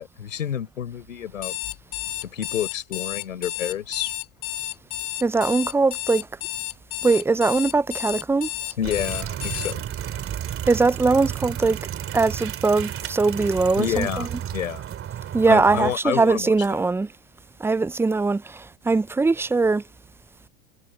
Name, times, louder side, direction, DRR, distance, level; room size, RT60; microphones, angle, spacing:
voice 1, 0.0-1.6 2.2-4.1 8.8-9.8 13.8-14.8 15.5-16.8, left 9 dB, 85° left, 4.5 m, -29 dB
Alarm, 1.3-9.7, left 14 dB, 35° left, 1.0 m, -32 dB
voice 2, 5.2-6.3 7.0-8.5 10.7-11.8 12.1-14.3 15.3-17.1 17.6-19.8, right 3 dB, 5° right, 0.5 m, -21 dB
sound 1, 8.8-16.0, right 10 dB, 35° right, 2.9 m, -32 dB
hypercardioid pair, 95°, 38 cm